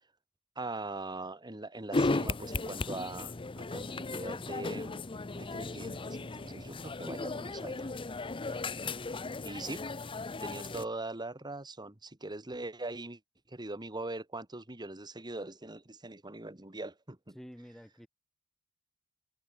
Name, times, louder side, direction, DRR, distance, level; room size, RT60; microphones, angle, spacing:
voice 1, 0.6-5.0 5.3-7.9 9.4-9.8 10.4-13.2 13.5-17.4, right 2 dB, 20° right, 1.9 m, -41 dB
sound 1, 1.9-10.8, left 3 dB, 25° left, 0.7 m, -36 dB
voice 2, 9.2-9.7 17.3-18.1, equal, ahead, 1.3 m, -51 dB
head